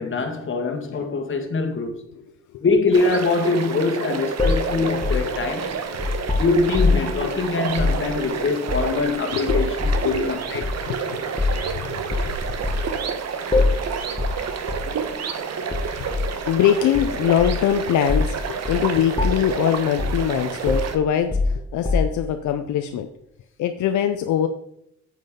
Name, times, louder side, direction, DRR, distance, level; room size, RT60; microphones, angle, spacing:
voice 1, 0.0-2.0 2.6-5.7 6.4-10.7, left 3 dB, 40° left, 1.7 m, -23 dB
sound 1, 2.9-21.0, right 6 dB, 60° right, 1.2 m, -30 dB
sound 2, 4.4-7.2 7.7-8.0 8.7-9.1 9.5-10.1 10.6-10.8 11.4-11.7 12.1-12.9 13.5-13.9 14.2-14.4 14.7-14.9 15.7-16.3 16.9-17.7 18.1-18.4 18.7-18.9 19.2-19.6 20.0-20.3 20.7-22.3, left 3 dB, 15° left, 1.4 m, -23 dB
voice 2, 10.0-11.4 11.7-12.6 16.0-16.1 16.5-23.1 23.6-24.5, left 9 dB, 75° left, 0.6 m, -23 dB
9.0 x 7.6 x 3.7 m
cardioid pair, 90°, 30 cm